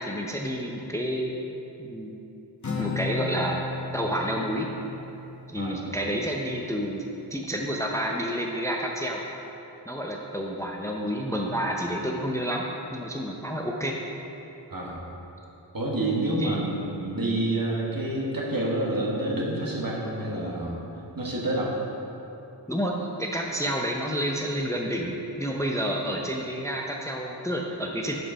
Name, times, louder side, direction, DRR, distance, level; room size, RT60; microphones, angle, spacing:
voice 1, 0.0-2.1 2.8-3.6 3.9-4.7 5.5-9.2 9.9-12.6 12.9-13.9 16.4-16.7 22.7-28.1, equal, 5° left, 0 dB, 0.6 m, -29 dB
Acoustic guitar, 2.6-6.3, left 3 dB, 40° left, 1.0 m, -35 dB
voice 2, 5.6-6.0 14.7-15.0 15.7-20.8 21.2-21.8, right 1 dB, 50° right, -3 dB, 1.5 m, -28 dB
6.4 x 6.1 x 5.4 m, 2.9 s
wide cardioid pair, 50°, 44 cm